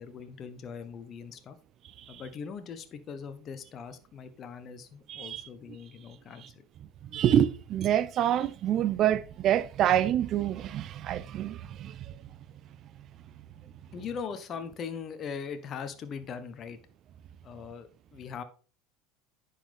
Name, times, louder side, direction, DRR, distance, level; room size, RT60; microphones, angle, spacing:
voice 1, 0.0-1.6 2.1-6.4 13.9-16.8 17.4-18.4, left 6 dB, 40° left, 1.2 m, -40 dB
voice 2, 5.1-5.5 6.4-6.5 7.1-12.2, right 11 dB, 45° right, 0.7 m, -27 dB
10.0 x 5.6 x 3.6 m
hypercardioid pair, 80°, 0 cm